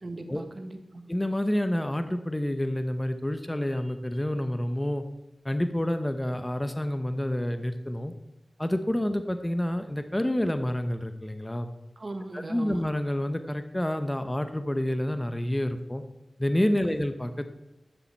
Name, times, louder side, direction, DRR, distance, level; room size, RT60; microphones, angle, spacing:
voice 1, 0.0-1.1 12.0-12.9 16.9-17.0, right 2 dB, 50° right, 7 dB, 1.3 m, -39 dB
voice 2, 1.1-5.0 5.4-8.1 8.6-11.7 12.3-16.0 16.4-17.5, left 1 dB, 15° left, 8 dB, 0.9 m, -28 dB
11.5 x 7.0 x 4.6 m, 0.95 s
cardioid pair, 40°, 0 cm